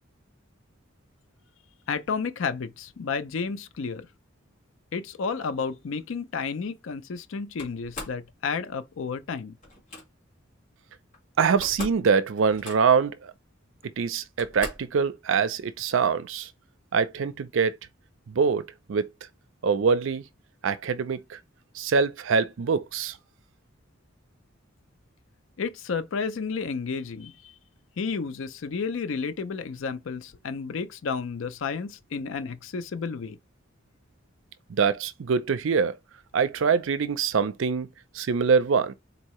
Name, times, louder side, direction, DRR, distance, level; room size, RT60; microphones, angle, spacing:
voice 1, 1.9-4.1 4.9-9.5 25.6-27.5 28.0-33.4, left 5 dB, 70° left, 0.5 m, -31 dB
Slam, 7.6-8.2 9.6-10.0 11.1-11.2 11.5-12.1 12.3-13.1 13.8-13.9 14.4-15.0, left 3 dB, 40° left, 1.6 m, -40 dB
voice 2, 11.4-13.1 14.0-16.5 16.9-17.8 18.3-19.1 19.6-20.2 20.6-21.4 21.8-23.2 34.7-35.9 36.3-37.9 38.1-38.9, right 5 dB, 70° right, 0.5 m, -24 dB
4.0 x 2.7 x 3.0 m
head